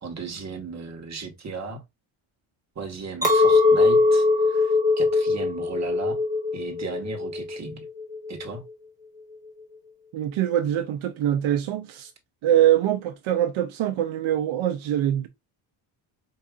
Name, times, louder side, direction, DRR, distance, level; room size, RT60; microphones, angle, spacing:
voice 1, 0.0-1.8 2.7-6.2 6.5-7.8 8.3-8.6, right 4 dB, 35° right, 1.1 m, -36 dB
Chink clink, 3.2-8.6, left 3 dB, 5° right, 1.4 m, -21 dB
voice 2, 10.1-12.1 12.4-15.3, right 11 dB, 70° right, 0.6 m, -23 dB
4.7 x 2.6 x 2.4 m
cardioid pair, 115°, 49 cm